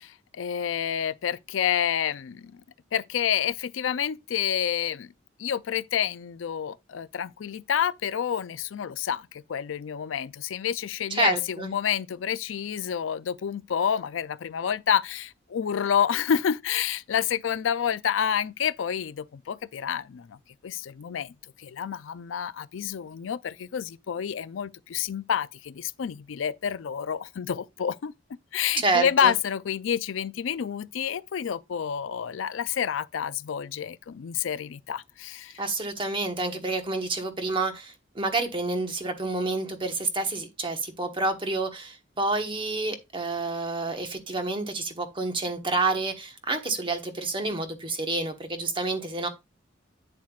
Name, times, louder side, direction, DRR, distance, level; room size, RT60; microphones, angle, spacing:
voice 1, 0.0-2.6 2.9-5.1 5.4-20.4 20.6-35.6, left 8 dB, 85° left, 0.4 m, -29 dB
voice 2, 11.1-11.7 28.8-29.3 35.6-49.3, right 3 dB, 25° right, 1.2 m, -29 dB
8.9 x 7.3 x 2.4 m
head